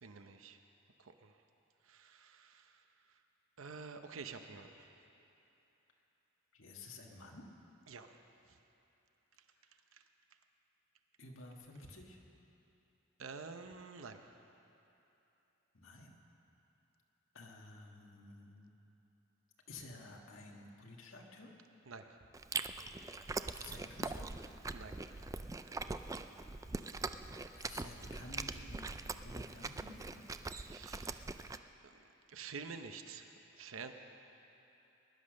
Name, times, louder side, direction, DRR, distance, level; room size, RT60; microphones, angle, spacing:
voice 1, 0.0-0.6 1.0-1.4 1.8-3.2 3.6-4.9 7.9-8.2 8.5-8.6 9.9-10.0 13.2-14.4 21.9-22.2 24.7-25.0 30.6-31.3 31.8-31.9 32.3-33.9, right 5 dB, 75° right, 7 dB, 0.8 m, -49 dB
voice 2, 6.5-7.4 11.2-12.2 15.7-16.2 17.3-18.7 19.7-21.5 22.8-23.0 23.5-24.3 27.6-30.2, left 2 dB, 70° left, 0 dB, 1.8 m, -53 dB
Chewing mastication, 22.3-31.6, right 3 dB, 15° right, 0.3 m, -42 dB
20.5 x 10.5 x 6.4 m, 2.9 s
head